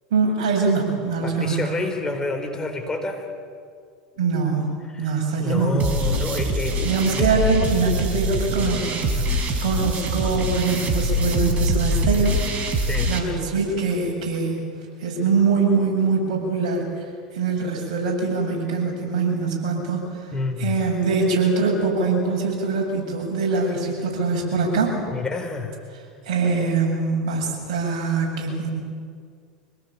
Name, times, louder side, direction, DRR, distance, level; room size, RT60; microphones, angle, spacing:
voice 1, 0.1-1.6 4.2-4.7 5.0-5.8 6.8-9.2 9.6-12.4 13.1-14.6 15.0-17.1 17.3-20.2 20.6-25.0 26.3-28.7, right 4 dB, 65° right, 0 dB, 7.7 m, -23 dB
voice 2, 1.2-3.2 4.9-5.1 5.4-7.3 12.8-13.1 20.3-20.8 25.1-25.8, left 3 dB, 15° left, 3 dB, 4.3 m, -28 dB
sound 1, 5.8-13.2, equal, 35° right, 4.6 m, -24 dB
26.5 x 18.0 x 8.7 m, 2.1 s
hypercardioid pair, 90°, 4 cm